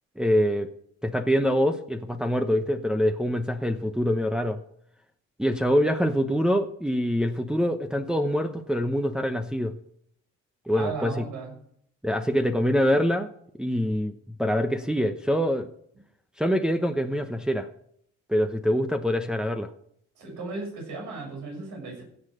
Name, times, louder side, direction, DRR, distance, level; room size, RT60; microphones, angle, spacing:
voice 1, 0.2-0.7 1.0-4.6 5.4-9.7 10.7-11.3 12.0-13.3 13.6-15.7 16.4-17.7 18.3-19.7, equal, 5° right, 5 dB, 0.9 m, -25 dB
voice 2, 10.7-11.5 20.1-22.0, right 3 dB, 80° right, -1 dB, 6.7 m, -35 dB
16.5 x 6.6 x 6.5 m, 0.68 s
cardioid pair, 90°, 30 cm